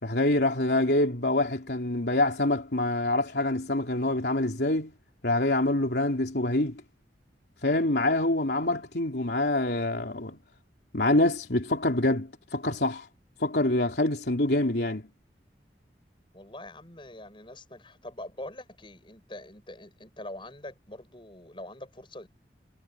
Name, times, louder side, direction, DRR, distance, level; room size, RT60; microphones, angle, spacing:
voice 1, 0.0-4.9 5.2-6.8 7.6-10.4 10.9-13.1 13.4-15.0, left 2 dB, 70° left, 3.1 m, -26 dB
voice 2, 16.3-22.3, left 1 dB, 30° left, 7.0 m, -44 dB
head